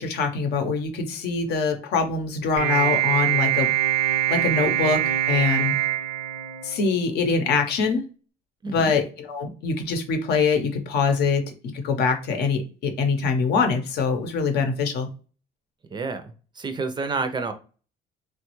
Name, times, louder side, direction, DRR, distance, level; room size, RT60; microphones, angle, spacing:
voice 1, 0.0-3.7 4.3-5.0 5.3-5.7 6.6-8.0 8.7-11.4 11.7-15.1, left 5 dB, 75° left, 5 dB, 0.7 m, -24 dB
sound 1, 2.6-7.1, right 12 dB, 80° right, 0.5 m, -23 dB
voice 2, 8.6-8.9 15.9-17.5, right 4 dB, 25° right, 8 dB, 0.4 m, -29 dB
3.1 x 2.3 x 3.0 m, 0.36 s
cardioid pair, 110°, 17 cm